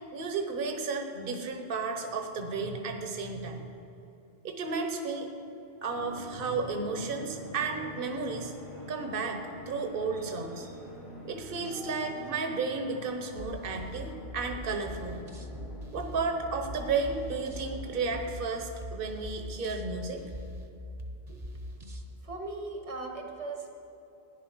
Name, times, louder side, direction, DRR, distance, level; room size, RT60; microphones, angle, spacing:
voice 1, 0.1-3.7 4.4-5.3 5.8-8.5 8.9-10.7 11.2-15.3 15.9-20.2, right 4 dB, 55° right, 5 dB, 1.2 m, -33 dB
sound 1, 5.9-18.3, equal, 55° left, 2.5 m, -46 dB
sound 2, 13.4-22.1, equal, 40° right, 1.1 m, -42 dB
voice 2, 22.2-23.7, right 3 dB, 85° right, 2 dB, 2.1 m, -38 dB
14.5 x 10.0 x 6.2 m, 2.9 s
omnidirectional pair, 1.1 m